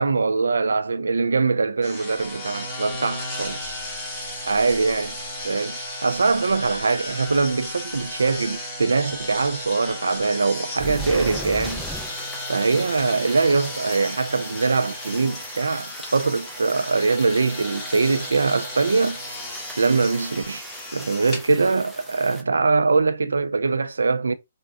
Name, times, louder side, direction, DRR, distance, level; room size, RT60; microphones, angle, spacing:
voice 1, 0.0-3.8 4.5-5.2 5.4-11.8 12.5-19.2 19.8-24.3, right 4 dB, 85° right, 0.3 m, -22 dB
sound 1, 1.8-21.4, left 1 dB, 20° left, 1.3 m, -34 dB
sound 2, 10.8-22.4, right 1 dB, ahead, 0.5 m, -39 dB
3.4 x 2.1 x 2.4 m
hypercardioid pair, 145°, 0 cm